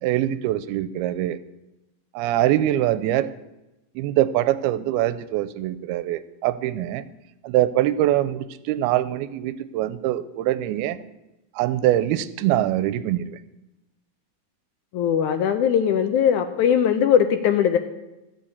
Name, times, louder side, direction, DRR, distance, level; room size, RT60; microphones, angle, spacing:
voice 1, 0.0-1.4 2.1-3.3 4.0-7.0 7.4-11.0 11.6-13.4, right 13 dB, 85° right, 15 dB, 2.6 m, -23 dB
voice 2, 14.9-17.8, left 8 dB, 80° left, 7 dB, 1.8 m, -20 dB
13.5 x 7.1 x 8.5 m, 0.97 s
omnidirectional pair, 4.3 m